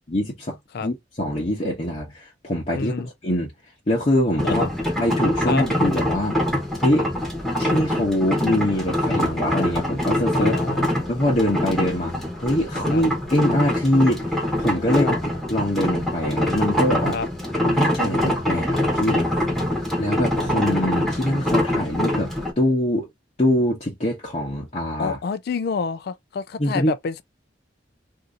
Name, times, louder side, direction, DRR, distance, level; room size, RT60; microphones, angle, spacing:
voice 1, 0.0-3.5 3.9-4.7 5.0-6.4 6.8-7.2 7.6-10.6 11.1-15.2 15.5-17.2 17.6-19.3 20.0-23.1 23.4-25.2 26.6-26.9, left 1 dB, 40° left, 0.9 m, -23 dB
voice 2, 2.7-3.1 4.4-4.7 5.5-5.6 10.3-10.9 12.9-13.0 14.9-15.2 17.1-17.3 25.0-27.2, left 5 dB, 60° left, 0.4 m, -28 dB
sound 1, 4.4-22.5, left 1 dB, ahead, 1.1 m, -24 dB
2.7 x 2.7 x 3.5 m
head